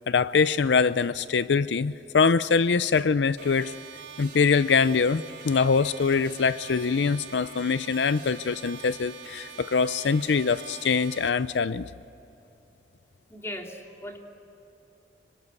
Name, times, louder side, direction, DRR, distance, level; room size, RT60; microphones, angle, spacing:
voice 1, 0.1-3.7 4.2-11.9, left 5 dB, 75° left, 15 dB, 0.5 m, -23 dB
sound 1, 3.4-11.3, right 7 dB, 80° right, 3.6 m, -44 dB
voice 2, 13.3-14.2, left 1 dB, 15° left, 2 dB, 2.9 m, -38 dB
26.0 x 24.5 x 8.2 m, 3.0 s
head